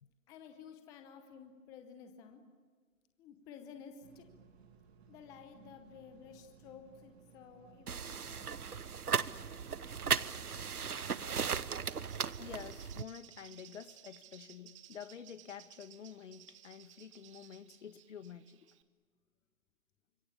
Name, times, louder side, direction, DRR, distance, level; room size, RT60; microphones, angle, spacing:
voice 1, 0.3-2.4 3.2-4.3 5.1-8.4, left 7 dB, 10° left, 0.8 m, -53 dB
sound 1, 4.0-11.2, right 6 dB, 45° right, 2.5 m, -61 dB
sound 2, 7.9-13.0, right 6 dB, 90° right, 1.0 m, -36 dB
Bird, 11.9-18.8, right 13 dB, 20° right, 1.0 m, -59 dB
voice 2, 12.4-18.7, left 8 dB, 55° left, 1.5 m, -49 dB
29.0 x 26.0 x 6.9 m
hypercardioid pair, 145°, 44 cm